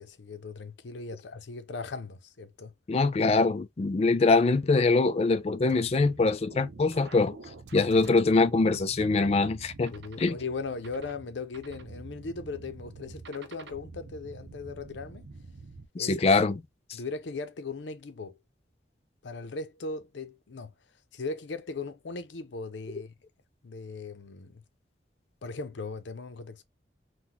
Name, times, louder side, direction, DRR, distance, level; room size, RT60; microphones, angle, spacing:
voice 1, 0.0-2.7 9.9-15.3 16.0-16.2 16.9-18.4 19.2-20.7 21.1-23.1 23.6-24.6 25.4-26.6, left 4 dB, 90° left, 0.6 m, -38 dB
voice 2, 2.9-7.4 7.7-10.3 16.0-16.6, left 3 dB, 35° left, 0.3 m, -23 dB
sound 1, 5.7-15.9, right 3 dB, 80° right, 0.7 m, -47 dB
3.9 x 2.2 x 2.8 m
head